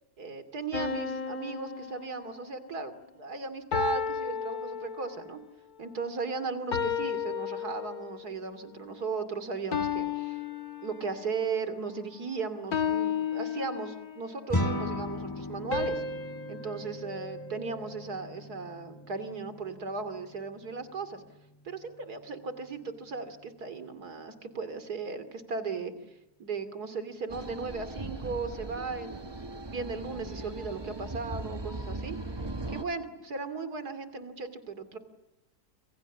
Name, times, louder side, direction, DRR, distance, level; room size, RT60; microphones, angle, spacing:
voice 1, 0.2-5.4 5.8-10.4 10.8-16.0 16.5-21.2 21.6-25.9 26.4-32.2 32.7-35.0, right 4 dB, 80° right, 11 dB, 3.2 m, -36 dB
sound 1, 0.7-2.7 3.7-5.4 6.7-8.3 9.7-11.4 12.7-14.3 15.7-18.0, left 7 dB, 70° left, 2.2 m, -33 dB
sound 2, 14.5-24.0, left 1 dB, 15° left, 1.9 m, -39 dB
sound 3, 27.3-32.8, right 2 dB, 20° right, 1.2 m, -39 dB
29.0 x 26.5 x 7.3 m, 0.94 s
omnidirectional pair, 1.6 m